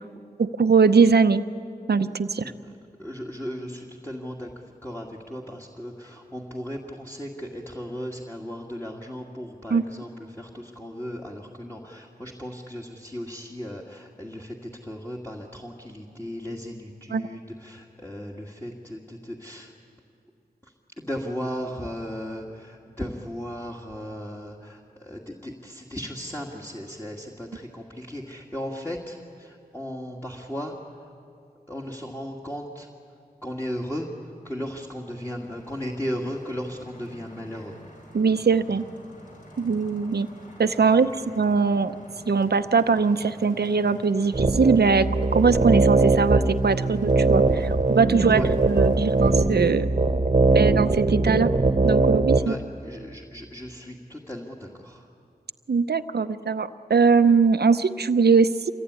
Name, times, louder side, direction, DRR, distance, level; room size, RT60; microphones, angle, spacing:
voice 1, 0.4-1.4 1.9-2.5 9.7-9.8 17.1-17.2 38.1-38.8 39.6-40.3 40.6-41.1 41.4-41.9 42.3-49.9 50.5-51.5 51.8-52.5 55.7-58.7, right 5 dB, 80° right, 10 dB, 0.8 m, -21 dB
voice 2, 2.4-2.7 3.0-19.7 20.6-31.1 31.7-32.9 33.4-37.8 40.8-41.2 48.3-48.5 52.4-55.1, equal, 15° left, -2 dB, 2.3 m, -36 dB
sound 1, 35.1-49.7, left 1 dB, 55° left, 5.8 m, -47 dB
sound 2, 44.3-52.5, right 3 dB, 45° right, 1.1 m, -21 dB
26.5 x 22.0 x 9.7 m, 2.5 s
wide cardioid pair, 45°, 16 cm